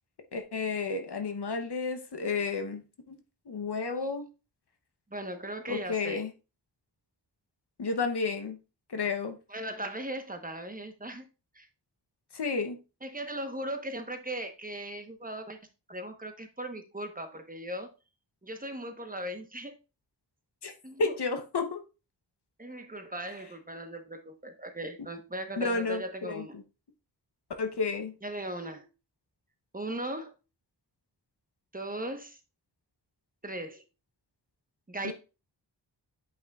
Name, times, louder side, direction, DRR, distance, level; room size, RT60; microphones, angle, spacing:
voice 1, 0.3-3.2 3.5-4.3 5.7-6.3 7.8-8.6 8.9-9.4 12.3-12.8 20.6-20.7 21.0-21.8 25.6-26.6 27.6-28.1 35.0-35.1, left 4 dB, 65° left, 6 dB, 0.9 m, -31 dB
voice 2, 5.1-6.2 9.5-11.2 11.5-11.7 13.0-15.6 15.9-17.9 18.4-19.7 20.8-21.1 22.6-26.5 28.2-28.9 29.7-30.3 31.7-32.4 33.4-33.8 34.9-35.1, right 1 dB, 20° right, 7 dB, 1.0 m, -38 dB
8.5 x 5.5 x 2.3 m, 0.30 s
wide cardioid pair, 90°, 44 cm